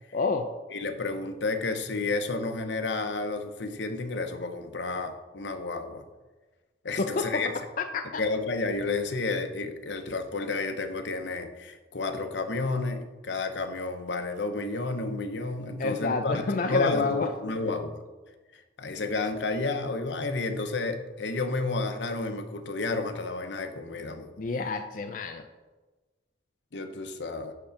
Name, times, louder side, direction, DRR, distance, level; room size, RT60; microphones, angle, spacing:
voice 1, 0.1-0.5 7.0-7.4 7.8-8.2 15.8-17.3 24.4-25.4, left 3 dB, 50° left, 5 dB, 0.5 m, -29 dB
voice 2, 0.7-6.0 6.8-7.5 8.2-18.0 18.8-24.4 26.7-27.5, left 3 dB, 75° left, 7 dB, 0.9 m, -31 dB
11.0 x 3.8 x 5.8 m, 1.2 s
head